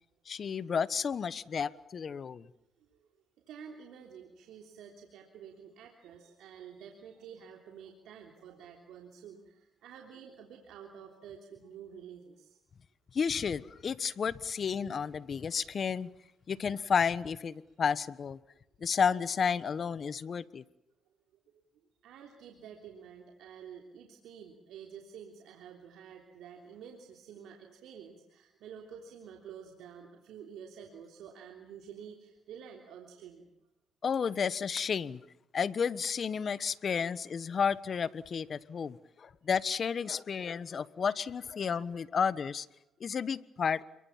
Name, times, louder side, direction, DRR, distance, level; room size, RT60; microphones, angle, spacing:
voice 1, 0.3-2.5 13.1-16.1 16.5-18.4 18.8-20.6 34.0-35.2 35.5-42.7 43.0-43.8, left 6 dB, 50° left, 16 dB, 1.2 m, -32 dB
voice 2, 3.5-12.6 17.7-17.8 21.5-21.6 22.0-33.4, right 7 dB, 85° right, 2 dB, 3.3 m, -50 dB
29.0 x 23.0 x 7.4 m, 0.87 s
cardioid pair, 90°, 0 cm